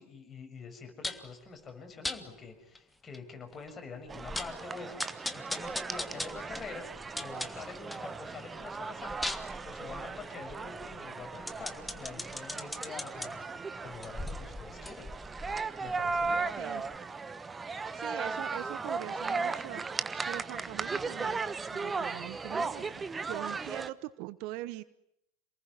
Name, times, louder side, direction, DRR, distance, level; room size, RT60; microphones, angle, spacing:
voice 1, 0.0-6.8 7.2-9.4 9.6-13.4 13.8-15.1 15.8-16.4, left 4 dB, 25° left, 4 dB, 6.7 m, -46 dB
sound 1, 1.0-1.3 2.0-2.2 2.7-2.8 3.1-3.2 3.7-3.8 4.1-4.6 5.0-8.1 8.5-13.3 13.9-16.6 16.9-17.0, left 2 dB, 5° left, 1.8 m, -40 dB
sound 2, 4.1-23.9, right 4 dB, 15° right, 1.2 m, -37 dB
voice 2, 17.9-19.8 20.2-21.4 21.7-24.8, right 17 dB, 50° right, 16 dB, 1.0 m, -42 dB
28.0 x 19.5 x 9.7 m, 0.79 s
figure-of-eight pair, 80°, 0 cm